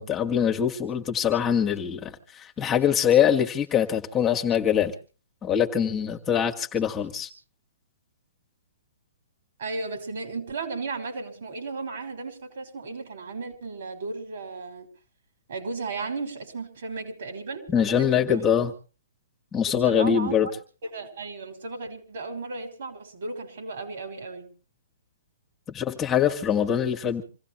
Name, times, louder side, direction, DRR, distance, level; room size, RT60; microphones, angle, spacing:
voice 1, 0.0-4.9 5.4-7.3 17.7-18.7 19.5-20.5 25.7-27.2, left 8 dB, 20° left, 2.0 m, -23 dB
voice 2, 9.6-14.9 15.5-18.4 19.7-20.5 20.8-24.5, right 3 dB, 65° right, 6.0 m, -35 dB
27.0 x 16.0 x 3.2 m
hypercardioid pair, 140°, 0 cm